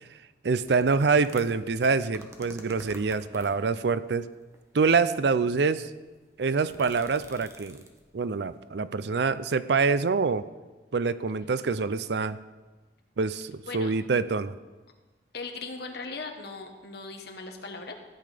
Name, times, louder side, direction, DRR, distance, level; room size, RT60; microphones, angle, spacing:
voice 1, 0.4-4.3 4.7-5.9 6.4-7.8 8.1-10.5 10.9-12.4 13.2-14.5, right 4 dB, 70° right, 15 dB, 0.5 m, -25 dB
sound 1, 0.6-3.7 4.5-5.0 5.6-5.7 5.9-8.1 8.5-8.6, right 1 dB, 15° right, 1.2 m, -49 dB
voice 2, 15.3-18.0, left 3 dB, 65° left, 5 dB, 1.4 m, -38 dB
14.5 x 8.6 x 5.1 m, 1.2 s
head